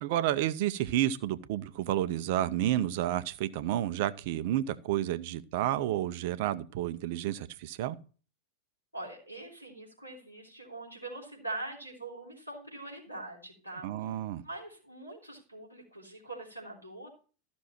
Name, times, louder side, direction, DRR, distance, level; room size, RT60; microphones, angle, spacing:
voice 1, 0.0-8.0 13.8-14.4, right 12 dB, 50° right, 0.7 m, -30 dB
voice 2, 8.9-14.1 14.4-17.1, right 2 dB, 90° left, 3.5 m, -43 dB
13.5 x 6.2 x 4.3 m
figure-of-eight pair, 90°, 0 cm